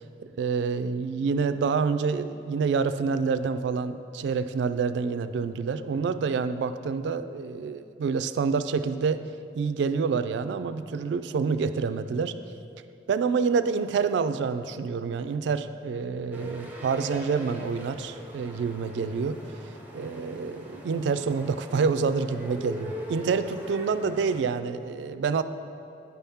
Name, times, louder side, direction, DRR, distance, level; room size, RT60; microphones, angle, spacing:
voice 1, 0.4-9.2 9.6-12.3 13.1-19.4 19.9-25.4, right 5 dB, 75° right, 11 dB, 0.3 m, -27 dB
sound 1, 16.3-24.4, equal, 10° right, 0.6 m, -41 dB
9.7 x 3.5 x 5.6 m, 2.5 s
head